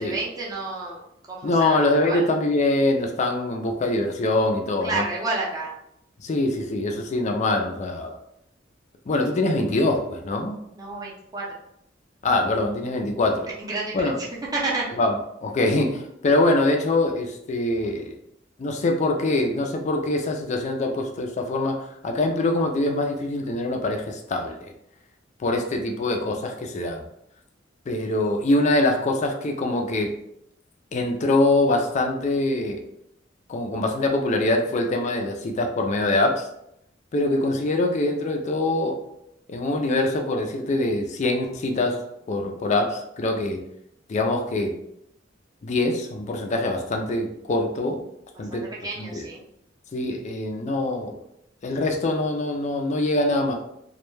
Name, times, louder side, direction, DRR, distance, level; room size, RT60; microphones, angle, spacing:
voice 1, 0.0-2.3 4.8-5.8 10.8-11.5 13.6-14.3 14.5-15.0 48.3-49.4, right 3 dB, 20° right, -4 dB, 0.5 m, -30 dB
voice 2, 1.4-5.0 6.2-8.1 9.1-10.6 12.2-13.5 13.9-14.2 15.0-15.2 15.4-18.1 18.6-24.6 25.4-27.0 27.9-30.1 30.9-32.8 33.5-36.5 37.1-39.0 39.5-42.0 42.3-43.6 44.1-44.8 45.6-48.0 48.4-48.7 49.0-49.3 49.9-51.2 51.6-53.5, left 2 dB, 40° left, 3 dB, 0.3 m, -24 dB
2.2 x 2.1 x 3.1 m, 0.77 s
head